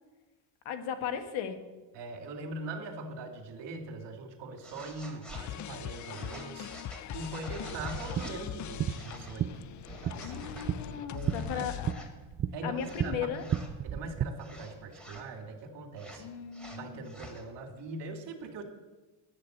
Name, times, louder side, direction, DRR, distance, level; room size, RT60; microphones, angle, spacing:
voice 1, 0.6-1.6 10.2-12.1 12.6-13.5 16.2-17.2, left 8 dB, 80° left, 7 dB, 1.6 m, -37 dB
voice 2, 1.9-6.7 7.1-9.5 10.0-10.5 11.0-11.7 12.5-13.6 13.8-16.3 16.7-18.6, right 2 dB, 60° right, 3 dB, 2.3 m, -41 dB
sound 1, 4.6-5.4 6.0-8.4 8.8-9.4 9.8-10.7 11.1-11.5 11.8-12.1 12.7-13.7 14.4-15.3 16.0-17.4, equal, ahead, 2.8 m, -48 dB
sound 2, 5.3-11.9, left 11 dB, 40° left, 0.4 m, -41 dB
sound 3, 7.7-14.3, right 9 dB, 30° right, 0.5 m, -35 dB
10.5 x 8.4 x 7.8 m, 1.2 s
cardioid pair, 100°, 47 cm